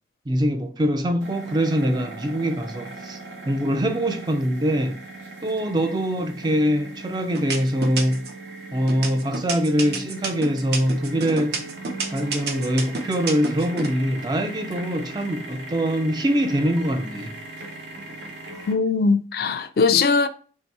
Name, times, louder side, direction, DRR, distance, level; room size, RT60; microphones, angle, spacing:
voice 1, 0.3-3.2 3.4-5.0 5.4-8.3 8.7-11.7 12.1-17.3, equal, 25° right, 0.3 m, -23 dB
sound 1, 1.2-18.7, right 2 dB, 85° right, 1.1 m, -39 dB
sound 2, 6.4-6.9 7.4-8.4 8.9-13.9, right 4 dB, 60° right, 0.7 m, -29 dB
voice 2, 18.7-20.3, left 4 dB, 55° left, 0.3 m, -20 dB
3.2 x 2.8 x 4.5 m
head